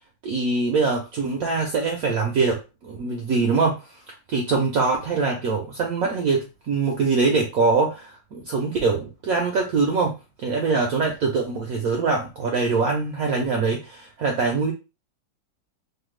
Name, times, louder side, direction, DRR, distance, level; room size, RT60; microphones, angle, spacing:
voice 1, 0.2-3.8 4.3-10.1 10.4-14.7, right 4 dB, 70° right, 1 dB, 0.8 m, -23 dB
3.2 x 2.2 x 3.1 m, 0.29 s
omnidirectional pair, 2.1 m